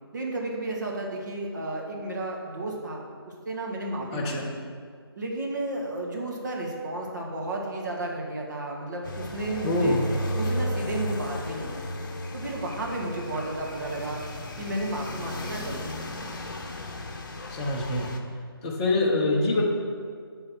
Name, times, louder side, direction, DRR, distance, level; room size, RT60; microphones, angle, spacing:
voice 1, 0.1-3.0 3.4-4.6 5.1-9.9 10.3-11.7 12.3-14.2 14.6-16.4, right 2 dB, 45° right, -1 dB, 1.5 m, -33 dB
voice 2, 4.1-4.5 9.6-10.1 17.5-18.1 18.6-19.6, left 2 dB, 15° left, -2 dB, 0.8 m, -25 dB
sound 1, 9.0-18.2, left 1 dB, 50° left, 0.9 m, -34 dB
9.6 x 4.0 x 6.1 m, 2.1 s
figure-of-eight pair, 155°, 13 cm